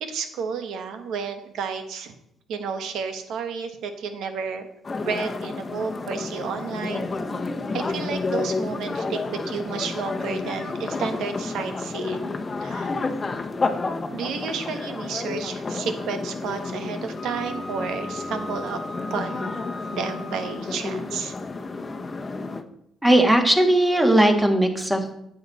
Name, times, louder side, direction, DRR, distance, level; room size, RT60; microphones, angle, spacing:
voice 1, 0.0-2.1 2.5-4.7 5.0-7.1 7.7-12.3 12.6-12.9 14.1-18.8 19.1-19.6 19.9-21.3, right 6 dB, 80° right, 8 dB, 1.2 m, -31 dB
sound 1, 4.8-22.6, left 3 dB, 30° left, 0.9 m, -30 dB
Wind instrument woodwind instrument, 17.1-20.7, left 1 dB, 55° left, 1.3 m, -39 dB
voice 2, 23.0-25.1, right 1 dB, 10° right, 4 dB, 1.7 m, -18 dB
9.3 x 7.8 x 4.1 m, 0.77 s
cardioid pair, 90°, 0 cm